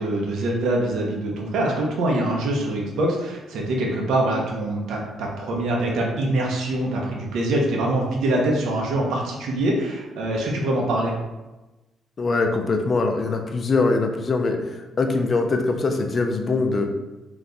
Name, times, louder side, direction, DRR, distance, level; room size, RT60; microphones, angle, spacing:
voice 1, 0.0-11.1, right 1 dB, 75° right, -1 dB, 0.9 m, -24 dB
voice 2, 12.2-16.9, left 3 dB, 40° left, 4 dB, 0.6 m, -22 dB
3.4 x 3.0 x 3.9 m, 1.1 s
cardioid pair, 90°, 0 cm